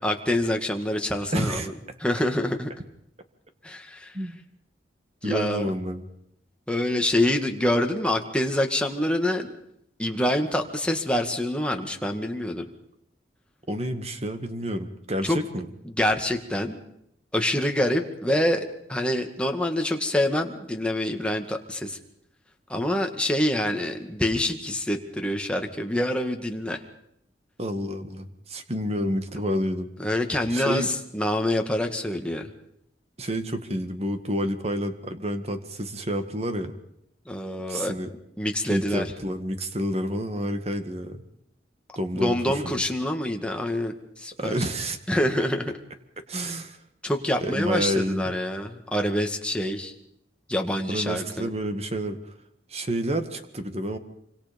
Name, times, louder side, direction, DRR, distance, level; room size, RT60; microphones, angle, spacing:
voice 1, 0.0-1.7 2.0-2.7 3.6-4.2 5.2-5.7 6.7-9.5 10.0-12.7 15.2-15.4 15.8-16.8 17.3-22.0 22.7-26.8 30.0-32.5 37.3-37.9 38.4-39.1 42.1-44.6 45.1-45.7 46.4-46.5 47.0-49.9 50.5-51.5, left 1 dB, 5° left, 3 dB, 2.0 m, -26 dB
voice 2, 1.3-1.7 4.1-4.4 5.2-6.0 13.7-15.7 27.6-29.9 30.5-30.9 33.2-36.7 37.7-38.1 38.7-41.2 42.0-42.7 44.4-45.0 46.3-46.8 47.4-48.3 50.9-52.3 52.7-54.0, equal, 35° right, 8 dB, 2.0 m, -29 dB
26.5 x 25.0 x 5.4 m, 0.76 s
head